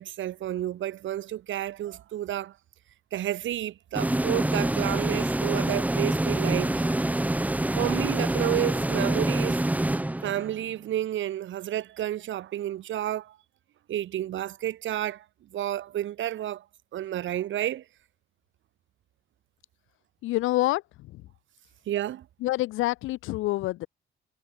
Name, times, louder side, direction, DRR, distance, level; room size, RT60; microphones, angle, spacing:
voice 1, 0.0-2.6 3.1-6.9 7.8-9.6 10.2-13.4 13.9-15.2 15.5-16.6 16.9-17.8 21.9-22.3, right 12 dB, 75° right, 2.5 m, -31 dB
sound 1, 4.0-10.7, right 1 dB, 5° right, 1.0 m, -26 dB
voice 2, 20.2-20.8 22.4-23.9, left 17 dB, 85° left, 0.6 m, -26 dB
cardioid pair, 90°, 20 cm